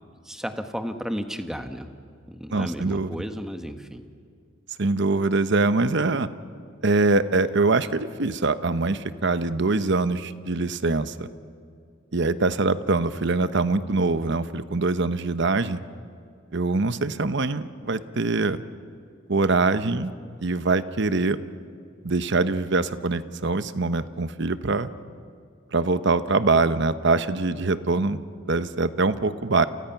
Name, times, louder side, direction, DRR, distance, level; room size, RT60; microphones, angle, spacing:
voice 1, 0.2-1.9 2.3-4.0, equal, 5° right, 7 dB, 1.3 m, -33 dB
voice 2, 2.5-3.2 4.8-6.3 6.8-11.3 12.1-15.8 16.5-18.6 19.3-20.1 20.4-21.4 22.0-24.9 25.7-28.2 28.5-29.7, right 3 dB, 60° right, 12 dB, 0.9 m, -23 dB
29.5 x 29.5 x 5.9 m, 2.3 s
head